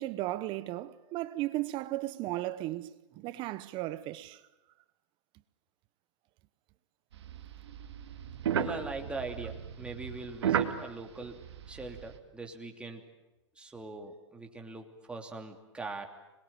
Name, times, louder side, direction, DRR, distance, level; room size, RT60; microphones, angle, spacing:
voice 1, 0.0-4.4, right 16 dB, 35° right, 1.0 m, -35 dB
sound 1, 7.1-12.2, right 9 dB, 65° right, 2.4 m, -35 dB
voice 2, 8.4-13.0 13.6-16.1, right 3 dB, 5° right, 2.9 m, -41 dB
26.5 x 21.5 x 9.1 m
hypercardioid pair, 125°, 15 cm